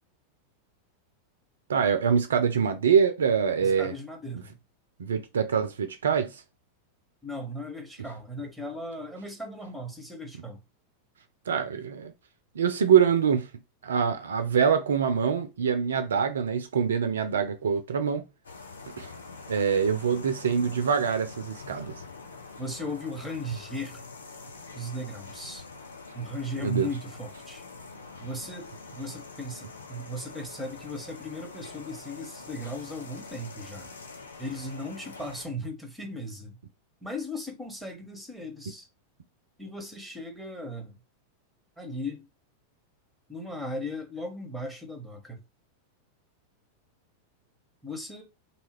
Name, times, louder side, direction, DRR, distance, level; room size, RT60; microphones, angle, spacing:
voice 1, 1.7-3.9 5.0-6.4 11.5-12.1 12.6-13.5 13.8-18.2 19.0-19.1 19.5-21.9 26.6-26.9, right 7 dB, 65° right, 0.3 m, -24 dB
voice 2, 3.6-4.6 7.2-10.6 22.6-24.0 24.7-25.7 26.1-27.6 28.2-33.9 34.4-36.6 37.0-38.9 39.6-41.0 41.8-42.2 43.3-45.4 47.8-48.2, left 1 dB, ahead, 0.9 m, -37 dB
sound 1, 18.4-35.5, left 4 dB, 70° left, 0.5 m, -45 dB
2.8 x 2.4 x 3.0 m
figure-of-eight pair, 90°, 0 cm